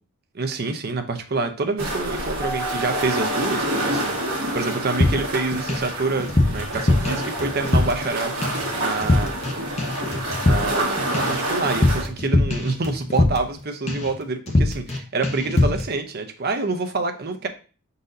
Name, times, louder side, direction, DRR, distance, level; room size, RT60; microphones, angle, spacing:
voice 1, 0.3-9.3 10.4-17.5, right 3 dB, 45° right, 6 dB, 0.6 m, -27 dB
sound 1, 1.8-12.0, right 1 dB, 65° right, 1.3 m, -28 dB
Mallet percussion, 2.4-4.8, right 1 dB, 10° left, 1.7 m, -36 dB
sound 2, 5.0-5.9 6.2-8.1 8.4-8.7 9.0-9.5 9.8-13.6 13.9-14.2 14.5-15.0 15.2-15.9, left 2 dB, 30° left, 0.7 m, -22 dB
5.0 x 4.0 x 2.6 m, 0.36 s
head